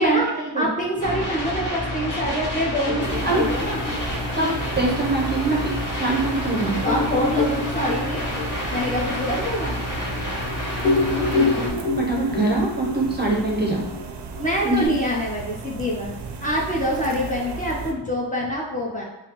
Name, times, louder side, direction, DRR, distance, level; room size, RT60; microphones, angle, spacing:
voice 1, 0.6-3.8 6.8-8.3 8.7-9.8 14.4-19.0, equal, 15° left, -4 dB, 0.7 m, -25 dB
sound 1, 1.0-11.7, left 1 dB, 40° left, 1.2 m, -29 dB
sound 2, 2.8-5.9 6.4-6.5 6.8-10.4 10.7-14.9, left 3 dB, ahead, 1.1 m, -27 dB
sound 3, 3.0-17.9, right 5 dB, 65° right, 0.6 m, -35 dB
voice 2, 4.4-6.8 11.2-11.7 12.0-13.9 14.6-14.9, right 2 dB, 20° right, -2 dB, 0.7 m, -23 dB
5.5 x 2.0 x 2.9 m, 0.99 s
wide cardioid pair, 90°, 46 cm